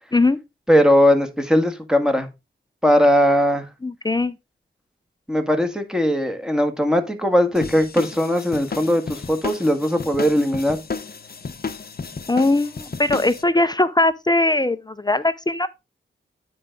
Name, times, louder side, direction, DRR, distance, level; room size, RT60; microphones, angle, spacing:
voice 1, 0.7-2.3 2.8-3.6 5.3-10.8, equal, 5° right, 1.8 m, -19 dB
voice 2, 3.8-4.3 12.3-15.7, left 2 dB, 20° left, 0.6 m, -20 dB
sound 1, 7.5-13.4, left 5 dB, 50° left, 0.8 m, -33 dB
9.4 x 4.7 x 3.8 m
cardioid pair, 55°, 21 cm